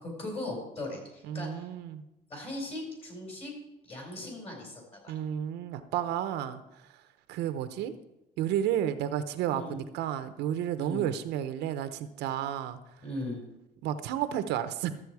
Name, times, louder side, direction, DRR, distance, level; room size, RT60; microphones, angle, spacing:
voice 1, 0.0-1.6 2.3-3.5 3.8-5.2 9.5-9.7 10.8-11.0 13.0-13.4, left 1 dB, 35° left, 1 dB, 4.5 m, -38 dB
voice 2, 1.2-2.0 5.1-6.6 7.3-7.9 8.4-12.8 13.8-15.0, right 10 dB, 85° right, 10 dB, 0.8 m, -31 dB
13.0 x 7.6 x 4.7 m, 0.92 s
cardioid pair, 110°, 17 cm